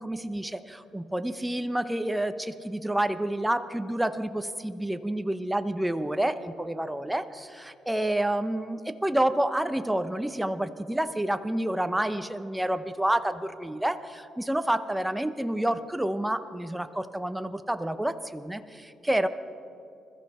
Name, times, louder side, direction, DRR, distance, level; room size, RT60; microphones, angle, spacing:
voice 1, 0.0-19.3, right 1 dB, 5° right, 9 dB, 0.7 m, -29 dB
21.5 x 14.0 x 4.3 m, 2.5 s
cardioid pair, 90°, 0 cm